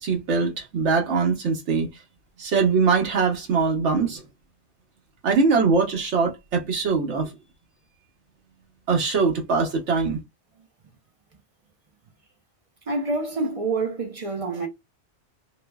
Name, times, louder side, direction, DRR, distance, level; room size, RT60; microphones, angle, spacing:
voice 1, 0.0-1.9 2.4-4.2 5.2-7.3 8.9-10.2, right 4 dB, 75° right, 1.2 m, -22 dB
voice 2, 12.9-14.7, right 3 dB, 45° right, 0.4 m, -27 dB
2.9 x 2.0 x 2.2 m
omnidirectional pair, 1.2 m